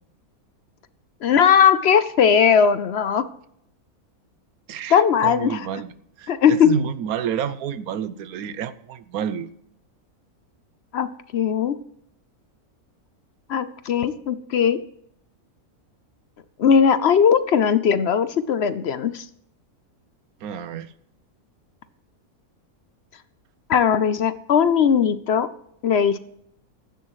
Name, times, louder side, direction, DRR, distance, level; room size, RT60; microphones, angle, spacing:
voice 1, 1.2-3.3 4.9-5.7 6.3-6.7 10.9-11.8 13.5-14.8 16.6-19.2 23.7-25.5 25.8-26.2, left 7 dB, 60° left, 14 dB, 0.7 m, -18 dB
voice 2, 4.7-5.9 6.2-9.5 20.4-20.9, right 8 dB, 80° right, 15 dB, 1.2 m, -29 dB
15.0 x 11.5 x 3.1 m, 0.71 s
omnidirectional pair, 1.5 m